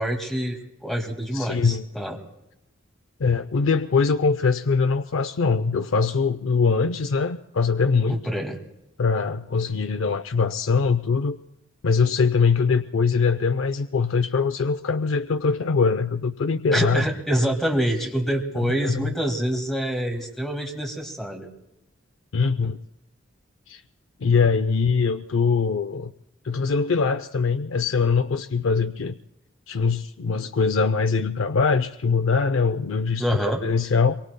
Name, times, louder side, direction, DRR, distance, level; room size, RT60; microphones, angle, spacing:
voice 1, 0.0-2.2 8.0-8.6 16.7-21.5 33.2-33.6, equal, ahead, 2 dB, 1.9 m, -26 dB
voice 2, 1.3-1.8 3.2-8.2 9.0-11.4 11.8-17.1 18.6-19.1 22.3-22.8 23.7-23.8 24.2-26.1 26.4-29.2 29.7-34.2, left 5 dB, 70° left, 10 dB, 0.5 m, -22 dB
25.0 x 23.5 x 2.2 m, 0.89 s
head